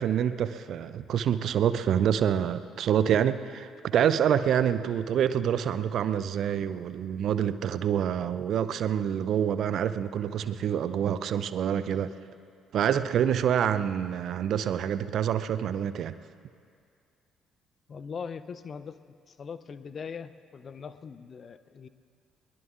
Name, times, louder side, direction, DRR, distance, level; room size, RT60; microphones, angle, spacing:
voice 1, 0.0-12.1 12.7-16.1, right 9 dB, 55° right, 13 dB, 0.5 m, -27 dB
voice 2, 17.9-19.0 19.3-21.9, left 6 dB, 40° left, 13 dB, 0.6 m, -40 dB
22.5 x 21.5 x 2.5 m, 2.3 s
figure-of-eight pair, 45°, 0 cm